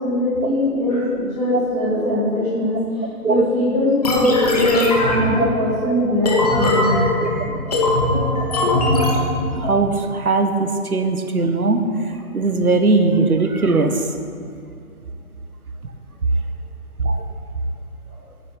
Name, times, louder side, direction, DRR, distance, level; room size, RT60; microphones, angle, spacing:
voice 1, 0.0-7.0 18.1-18.2, left 1 dB, 5° left, -11 dB, 2.8 m, -21 dB
sound 1, 4.0-9.8, left 2 dB, 25° left, 1.3 m, -20 dB
voice 2, 9.5-14.1 17.0-17.2, right 3 dB, 65° right, 6 dB, 1.5 m, -19 dB
10.0 x 7.3 x 9.1 m, 2.1 s
figure-of-eight pair, 150°, 46 cm